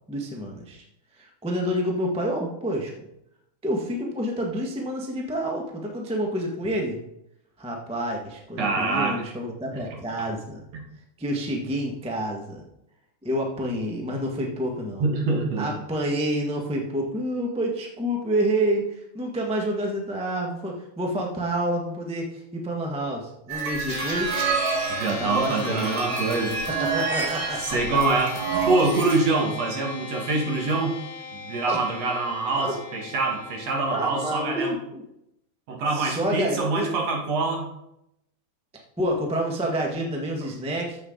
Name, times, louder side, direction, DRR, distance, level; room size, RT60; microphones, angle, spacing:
voice 1, 0.1-0.8 1.1-2.9 3.6-7.0 7.6-10.6 11.2-12.6 13.2-15.1 15.6-24.5 25.2-25.8 26.7-27.8 31.7-31.8 32.5-32.7 33.9-35.0 35.9-36.9 39.0-41.0, right 1 dB, 10° right, 0 dB, 0.4 m, -28 dB
voice 2, 8.6-9.2 9.7-9.8 10.7-10.8 15.0-15.7 24.9-26.6 27.6-28.4 28.7-31.0 31.3-34.7 35.7-37.7, right 3 dB, 60° right, 1 dB, 2.7 m, -25 dB
sound 1, 23.5-29.2, right 5 dB, 80° right, 3.3 m, -29 dB
sound 2, 23.9-34.7, left 5 dB, 40° left, 2.4 m, -38 dB
14.0 x 7.0 x 3.9 m, 0.82 s
omnidirectional pair, 3.4 m